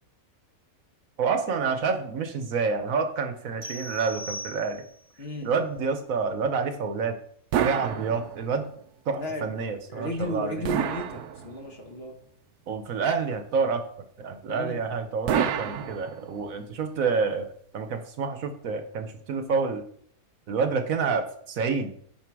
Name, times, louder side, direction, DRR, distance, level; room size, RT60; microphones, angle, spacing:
voice 1, 1.2-4.8 5.4-7.1 7.5-8.7 9.1-10.6 12.7-13.8 14.2-19.8 20.5-21.9, right 5 dB, 65° right, 7 dB, 1.2 m, -28 dB
sound 1, 3.6-5.2, equal, 35° right, 0.8 m, -39 dB
voice 2, 5.2-5.5 9.2-9.5 9.9-12.1 14.5-14.8, left 1 dB, 45° left, 3 dB, 1.4 m, -34 dB
sound 2, 7.5-8.7 10.6-11.9 15.3-16.6, right 9 dB, 90° right, 1.2 m, -29 dB
10.0 x 4.5 x 4.7 m, 0.63 s
omnidirectional pair, 1.6 m